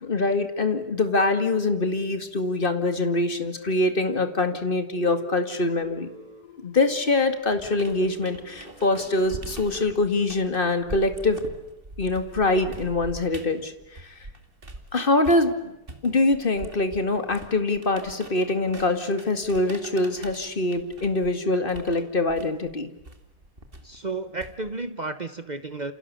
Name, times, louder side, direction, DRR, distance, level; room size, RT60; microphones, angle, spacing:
voice 1, 0.0-6.1 6.6-11.4 12.0-14.1 14.9-15.7 16.0-22.9, left 2 dB, 25° left, 8 dB, 2.1 m, -24 dB
sound 1, 3.5-9.8, left 3 dB, 45° left, 5.1 m, -46 dB
sound 2, 7.5-14.9 15.2-24.9, right 2 dB, 25° right, 2.5 m, -43 dB
voice 2, 23.8-25.9, right 3 dB, 85° right, 10 dB, 0.4 m, -32 dB
29.0 x 28.0 x 6.9 m, 0.97 s
omnidirectional pair, 2.4 m